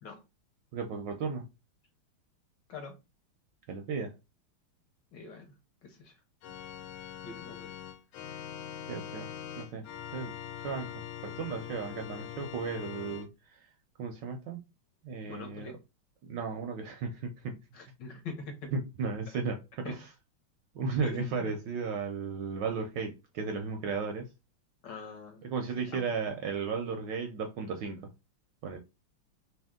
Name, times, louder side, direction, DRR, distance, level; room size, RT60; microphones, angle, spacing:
voice 1, 0.7-1.5 3.7-4.1 8.9-9.3 9.6-9.9 10.1-10.3 10.6-13.6 14.0-14.6 15.0-15.7 16.2-17.6 18.7-20.1 20.7-24.3 25.4-28.1 28.6-28.8, right 5 dB, 70° right, 1.1 m, -35 dB
voice 2, 5.1-5.5 5.8-6.1 7.2-7.7 15.3-15.8 17.7-18.7 19.8-20.0 21.0-21.5 24.8-25.4 25.9-26.1, left 4 dB, 65° left, 1.4 m, -43 dB
Organ, 6.4-13.3, left 10 dB, 80° left, 1.4 m, -42 dB
3.4 x 2.8 x 3.5 m
omnidirectional pair, 2.3 m